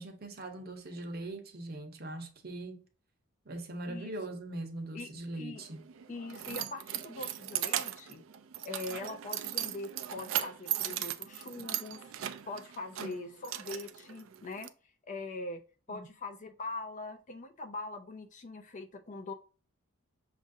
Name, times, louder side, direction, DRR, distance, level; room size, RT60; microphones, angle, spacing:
voice 1, 0.0-2.8 3.5-5.8 15.9-16.0, right 2 dB, 45° right, 0.8 m, -41 dB
Keys jangling, 5.6-14.7, right 11 dB, 65° right, 0.4 m, -38 dB
voice 2, 6.1-8.2 8.6-12.1 12.5-14.7 15.0-15.6 15.9-19.3, left 2 dB, 35° left, 0.4 m, -42 dB
6.1 x 2.5 x 2.6 m
head